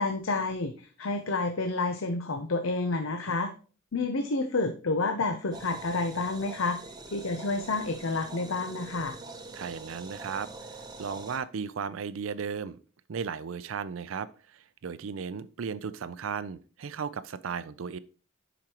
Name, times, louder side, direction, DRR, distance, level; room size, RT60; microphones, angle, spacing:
voice 1, 0.0-3.5 3.9-6.8 7.1-9.2, left 3 dB, 90° left, 6 dB, 0.7 m, -29 dB
sound 1, 5.5-11.4, right 3 dB, 20° right, 0.8 m, -44 dB
voice 2, 9.5-10.7 11.0-12.8 13.1-18.0, right 6 dB, 80° right, 16 dB, 0.5 m, -35 dB
10.5 x 5.0 x 2.9 m, 0.39 s
head